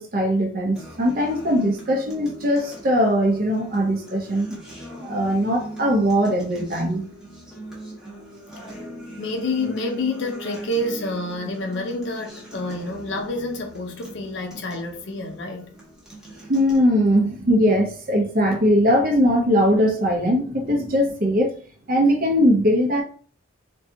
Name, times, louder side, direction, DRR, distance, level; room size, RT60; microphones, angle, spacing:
voice 1, 0.0-4.6 5.0-7.0 16.5-21.5 21.9-23.0, equal, 45° right, 0.6 m, -20 dB
Acoustic guitar, 0.8-16.8, right 1 dB, 5° right, 0.7 m, -41 dB
voice 2, 9.2-15.7, left 2 dB, 60° left, 0.5 m, -28 dB
2.6 x 2.2 x 2.6 m
head